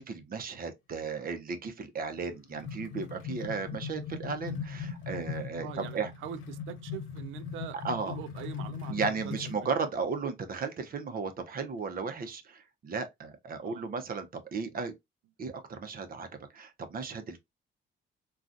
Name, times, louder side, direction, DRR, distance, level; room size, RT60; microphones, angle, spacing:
voice 1, 0.0-6.1 7.8-8.2 8.9-14.9 15.4-17.4, right 5 dB, 45° right, 0.7 m, -35 dB
sound 1, 2.1-9.7, left 6 dB, 80° left, 0.8 m, -39 dB
voice 2, 5.6-7.8 8.1-9.7 13.6-13.8, right 11 dB, 85° right, 0.5 m, -43 dB
3.8 x 2.3 x 2.4 m
cardioid pair, 90°, 20 cm